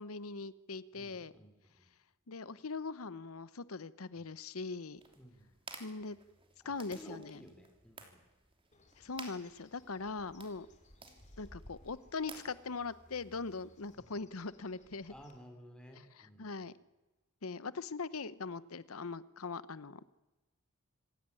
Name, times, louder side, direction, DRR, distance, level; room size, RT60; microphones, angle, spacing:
voice 1, 0.0-1.3 2.3-5.0 5.8-6.2 6.6-7.4 9.0-10.7 11.4-15.1 16.2-16.7 17.4-20.0, left 4 dB, 75° left, 17 dB, 0.9 m, -41 dB
voice 2, 0.9-1.9 4.2-4.3 5.1-5.5 6.6-8.2 14.0-14.2 15.1-16.5, equal, 5° left, 3 dB, 3.4 m, -55 dB
sound 1, 5.0-14.0, right 4 dB, 25° right, 3.1 m, -55 dB
Bird, 8.7-15.4, left 1 dB, 35° left, 3.0 m, -61 dB
26.5 x 16.5 x 9.9 m, 1.1 s
head